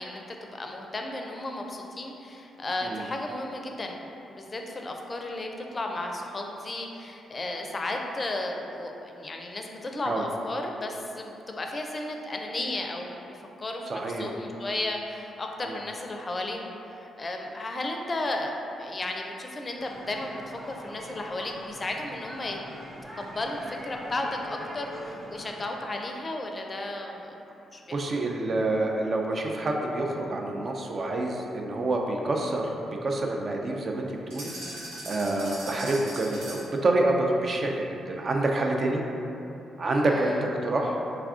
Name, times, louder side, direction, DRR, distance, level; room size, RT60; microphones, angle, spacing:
voice 1, 0.0-4.0 4.3-16.8 17.0-18.5 18.8-22.6 23.1-27.4 27.7-27.8, left 2 dB, 35° left, 2 dB, 0.4 m, -34 dB
voice 2, 13.9-14.3 15.6-15.8 27.9-32.7 33.0-39.0 39.8-41.0, right 2 dB, 50° right, 1 dB, 0.4 m, -27 dB
sound 1, 19.8-25.7, equal, 10° right, 1.0 m, -43 dB
sound 2, 34.3-36.8, right 1 dB, 90° right, 0.7 m, -40 dB
3.3 x 2.4 x 3.6 m, 2.9 s
supercardioid pair, 50°, 0 cm